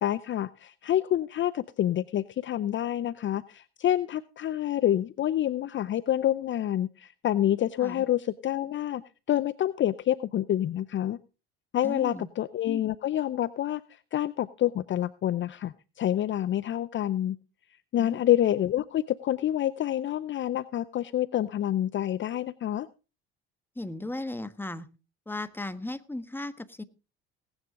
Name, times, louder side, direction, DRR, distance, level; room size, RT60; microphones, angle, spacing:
voice 1, 0.0-9.0 9.3-11.2 11.7-13.8 14.1-17.4 17.9-22.9, left 12 dB, 40° left, 17 dB, 0.6 m, -27 dB
voice 2, 11.8-12.3 18.0-18.2 23.7-24.9 25.3-26.8, left 2 dB, 5° left, 12 dB, 1.4 m, -36 dB
19.0 x 9.8 x 3.7 m, 0.32 s
hypercardioid pair, 70°, 29 cm